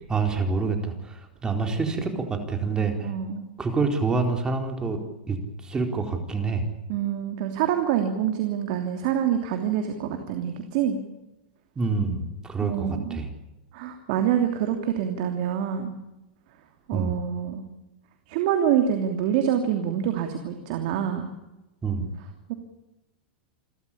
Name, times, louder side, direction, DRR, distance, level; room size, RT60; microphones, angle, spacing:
voice 1, 0.1-3.1 3.6-5.0 5.3-6.7 11.8-13.3 16.9-17.2 21.8-22.1, right 4 dB, 15° right, 4 dB, 4.2 m, -27 dB
voice 2, 3.0-3.5 6.9-11.0 12.6-13.2 13.7-15.9 16.9-17.6 18.3-21.3 22.5-22.6, right 9 dB, 55° right, 5 dB, 3.0 m, -26 dB
28.5 x 13.5 x 8.7 m, 0.98 s
supercardioid pair, 135°, 5 cm